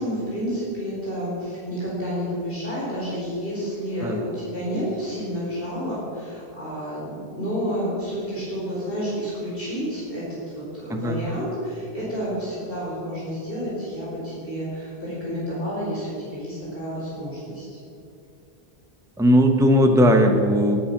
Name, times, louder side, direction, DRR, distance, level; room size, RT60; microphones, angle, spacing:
voice 1, 0.0-17.7, equal, 60° left, -7 dB, 5.1 m, -30 dB
voice 2, 10.9-11.2 19.2-20.8, equal, 5° right, 4 dB, 1.0 m, -18 dB
20.5 x 10.0 x 6.0 m, 2.5 s
omnidirectional pair, 1.0 m